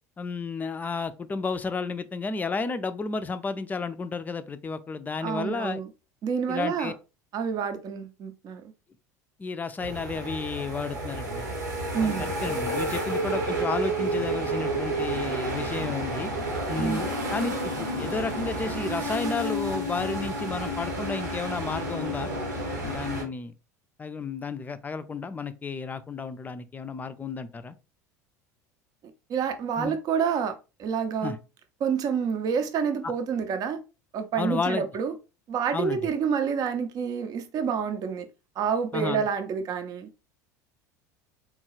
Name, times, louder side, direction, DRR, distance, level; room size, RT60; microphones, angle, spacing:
voice 1, 0.2-5.8 6.5-6.9 9.4-11.6 12.0-16.3 16.7-22.3 22.8-23.5 24.0-27.7 29.8-30.0 31.2-31.4 33.0-33.1 34.4-34.9 35.7-36.0 38.9-39.3, left 4 dB, 20° left, 0.4 m, -32 dB
voice 2, 5.2-5.9 6.2-6.9 7.3-8.6 11.9-12.3 16.8-17.0 29.3-30.5 30.8-31.4 31.8-33.8 34.1-35.1 35.5-38.3 38.6-40.1, right 7 dB, 45° right, 0.6 m, -28 dB
sound 1, 9.8-23.2, right 1 dB, 90° right, 1.1 m, -30 dB
3.7 x 2.3 x 3.0 m
hypercardioid pair, 75°, 9 cm